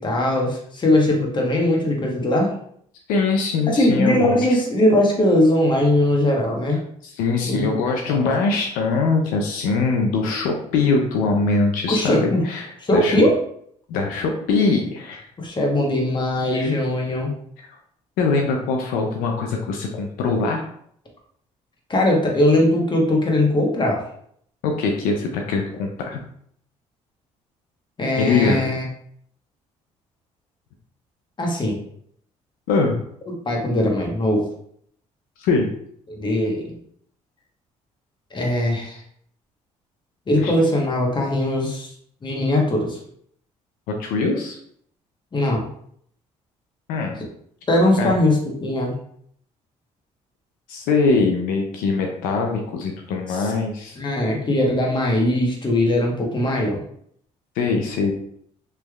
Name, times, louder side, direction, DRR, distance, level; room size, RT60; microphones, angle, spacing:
voice 1, 0.0-2.5 3.7-6.8 7.5-7.7 8.1-8.2 11.9-12.5 12.8-13.4 15.4-17.3 21.9-24.0 28.0-28.8 31.4-31.8 33.4-34.4 36.1-36.7 38.3-39.0 40.3-41.9 42.2-43.0 45.3-45.6 47.7-48.9 53.3-53.4 54.0-56.8, left 1 dB, 30° left, -1 dB, 1.1 m, -20 dB
voice 2, 3.1-4.4 7.0-13.2 13.9-15.3 16.5-16.7 17.6-17.7 18.2-20.6 24.6-26.2 28.2-28.6 32.7-33.0 35.4-35.7 40.4-40.5 43.9-44.6 46.9-47.2 48.0-48.1 50.7-54.0 57.6-58.1, left 4 dB, 85° left, 2 dB, 0.5 m, -22 dB
3.3 x 3.0 x 2.3 m, 0.66 s
supercardioid pair, 65°, 14 cm